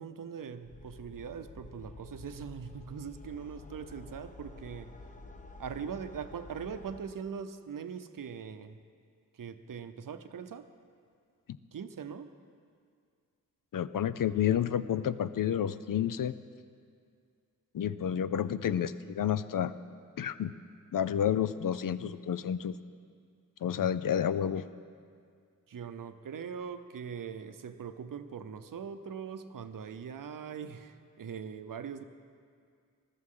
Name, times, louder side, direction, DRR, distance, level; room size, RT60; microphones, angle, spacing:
voice 1, 0.0-4.9 5.6-8.8 9.3-10.7 11.7-12.3 25.7-32.0, right 7 dB, 75° right, 10 dB, 0.7 m, -41 dB
sound 1, 0.7-7.0, left 2 dB, 25° left, 0.9 m, -50 dB
voice 2, 13.7-16.3 17.7-19.7 20.2-20.5 20.9-22.7 23.6-24.7, left 9 dB, 75° left, 14 dB, 0.5 m, -30 dB
20.5 x 13.5 x 3.8 m, 2.2 s
wide cardioid pair, 120°, 33 cm